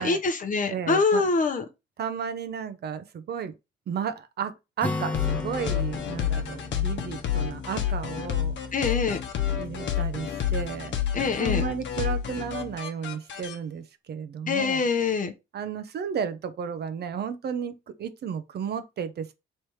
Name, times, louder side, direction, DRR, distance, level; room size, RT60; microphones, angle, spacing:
voice 1, 0.0-1.6 8.7-9.2 11.1-11.6 14.5-15.3, left 4 dB, 40° left, 0.7 m, -24 dB
voice 2, 0.7-1.3 2.0-3.5 3.9-8.9 9.6-11.0 11.4-14.8 15.5-19.3, right 7 dB, 55° right, 0.6 m, -33 dB
Acoustic guitar, 4.8-8.5, left 3 dB, 5° left, 0.9 m, -36 dB
sound 1, 5.1-13.5, left 9 dB, 65° left, 0.9 m, -29 dB
3.3 x 3.0 x 4.7 m
cardioid pair, 90°, 20 cm